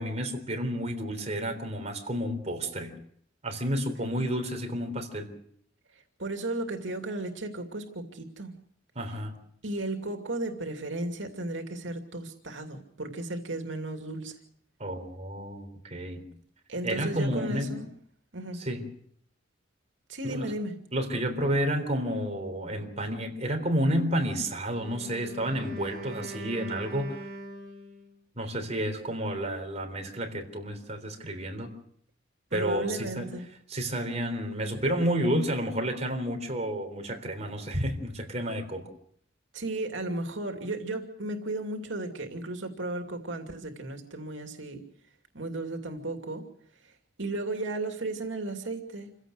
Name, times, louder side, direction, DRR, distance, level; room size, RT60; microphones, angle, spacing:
voice 1, 0.0-2.9 3.4-5.3 9.0-9.3 14.8-16.3 16.8-17.8 18.6-18.8 20.2-20.5 20.9-27.2 28.4-31.7 32.5-33.3 33.7-38.9, equal, 35° right, 5 dB, 3.7 m, -30 dB
voice 2, 6.2-8.5 9.6-14.3 16.7-17.9 18.3-18.6 20.1-20.7 32.5-33.5 39.5-44.8 45.3-46.5 47.2-49.1, right 2 dB, 90° right, 5 dB, 2.6 m, -34 dB
Wind instrument woodwind instrument, 24.7-28.2, right 1 dB, 55° right, 4.5 m, -42 dB
27.5 x 16.5 x 6.4 m, 0.65 s
head